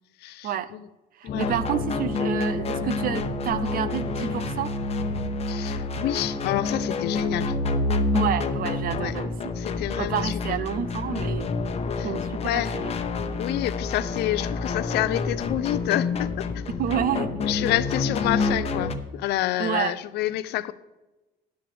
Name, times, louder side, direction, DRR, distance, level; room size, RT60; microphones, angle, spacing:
voice 1, 0.2-0.9 1.2-1.6 5.5-7.6 8.9-9.1 9.6-10.6 12.0-12.1 12.4-12.7 13.4-16.7 17.4-20.7, left 14 dB, 80° left, 15 dB, 0.6 m, -28 dB
voice 2, 1.2-4.8 8.1-9.5 10.0-11.5 12.0-12.9 16.8-17.3 19.6-19.9, right 9 dB, 60° right, 15 dB, 0.7 m, -29 dB
sound 1, 1.3-19.0, left 3 dB, 40° left, 1.0 m, -28 dB
13.0 x 10.0 x 3.4 m, 1.1 s
cardioid pair, 110°, 17 cm